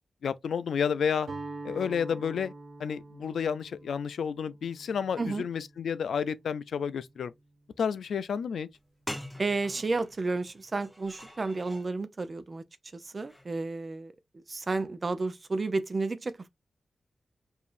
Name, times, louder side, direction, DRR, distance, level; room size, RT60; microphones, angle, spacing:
voice 1, 0.2-1.3 1.6-2.5 2.8-7.3 7.8-8.7, left 7 dB, 85° left, 0.3 m, -30 dB
Guitar, 1.2-7.3, right 2 dB, 80° right, 1.4 m, -46 dB
sound 1, 8.7-8.8 9.1-11.9 13.2-13.5, left 1 dB, 5° left, 0.9 m, -44 dB
voice 2, 9.4-12.6 12.9-14.1 14.5-16.5, right 3 dB, 40° right, 0.5 m, -31 dB
4.8 x 2.7 x 2.5 m
cardioid pair, 70°, 0 cm